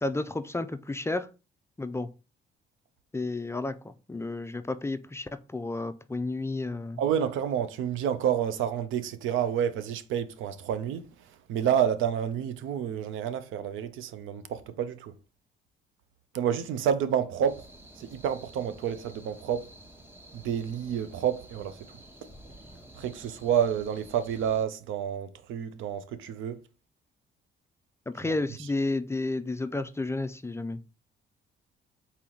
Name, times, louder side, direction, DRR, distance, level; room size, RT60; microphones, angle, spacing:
voice 1, 0.0-1.3 1.8-2.1 3.1-7.0 28.1-30.8, left 2 dB, 15° left, 0.4 m, -32 dB
voice 2, 7.0-15.1 16.3-17.7 18.0-19.7 20.3-21.9 22.9-26.6 28.6-28.7, right 9 dB, 85° right, 0.5 m, -29 dB
sound 1, 17.5-24.7, right 1 dB, 10° right, 0.8 m, -51 dB
4.1 x 3.0 x 3.8 m
cardioid pair, 90°, 20 cm